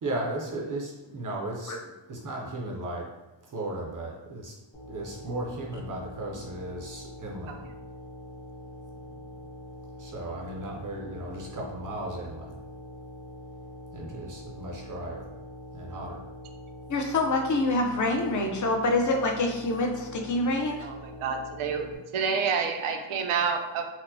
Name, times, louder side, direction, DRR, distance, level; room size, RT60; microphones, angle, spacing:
voice 1, 0.0-3.1 3.5-4.5 4.9-7.6 10.0-12.6 13.9-15.3 15.7-16.2, right 1 dB, 40° right, -1 dB, 0.5 m, -36 dB
sound 1, 4.7-22.0, left 1 dB, 80° left, 1.4 m, -44 dB
voice 2, 16.9-20.9, left 2 dB, 40° left, 2 dB, 0.5 m, -26 dB
voice 3, 20.8-21.9 22.1-23.8, right 6 dB, 85° right, 4 dB, 0.6 m, -28 dB
4.3 x 2.0 x 2.6 m, 1.0 s
wide cardioid pair, 165°, 49 cm